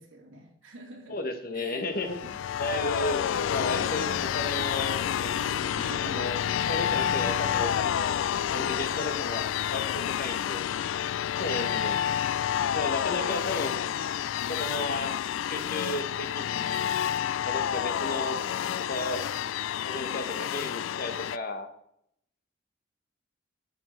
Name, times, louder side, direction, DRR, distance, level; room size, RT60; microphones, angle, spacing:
voice 1, 0.0-1.2 1.5-1.9 2.2-2.6 5.7-6.5 6.8-7.5 11.5-11.8, right 1 dB, 75° right, 1 dB, 2.6 m, -46 dB
voice 2, 1.1-2.2 2.6-5.3 6.0-6.4 6.7-8.1 8.5-10.6 11.4-12.1 12.7-13.8 14.5-15.1 15.4-16.8 17.3-18.4 18.9-19.2 19.8-21.7, left 2 dB, 45° left, 6 dB, 1.3 m, -34 dB
sound 1, 1.9-21.4, left 9 dB, 75° left, 0.3 m, -29 dB
sound 2, 3.4-8.7, right 2 dB, 25° right, 3.1 m, -47 dB
12.0 x 7.4 x 4.4 m, 0.74 s
head